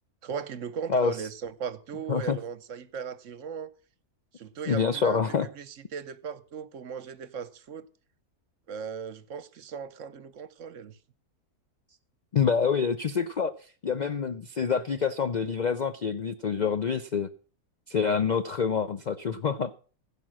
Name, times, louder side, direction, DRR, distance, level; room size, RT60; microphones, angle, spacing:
voice 1, 0.2-3.7 4.4-5.2 5.5-7.9 8.7-11.0, right 7 dB, 60° right, 1.0 m, -37 dB
voice 2, 4.7-5.5 12.3-17.3 17.9-19.7, left 6 dB, 80° left, 0.4 m, -27 dB
16.0 x 5.4 x 7.5 m
omnidirectional pair, 1.6 m